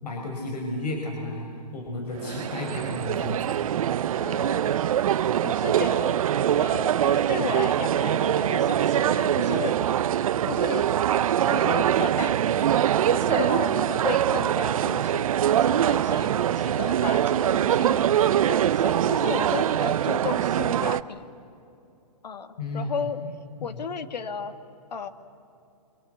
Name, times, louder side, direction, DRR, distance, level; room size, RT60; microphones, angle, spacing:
voice 1, 0.0-3.5 22.6-23.3 23.6-23.9, left 2 dB, 70° left, 1 dB, 4.9 m, -33 dB
sound 1, 2.2-21.0, right 10 dB, 55° right, 0.7 m, -23 dB
voice 2, 4.2-4.7 5.4-6.2 6.6-9.9 10.5-10.9 11.5-12.7 13.1-15.3 15.6-18.0 18.5-21.3 22.2-23.2 23.6-24.5 24.9-25.1, left 6 dB, 85° left, 10 dB, 2.0 m, -34 dB
29.5 x 25.0 x 8.0 m, 2.7 s
hypercardioid pair, 165°, 21 cm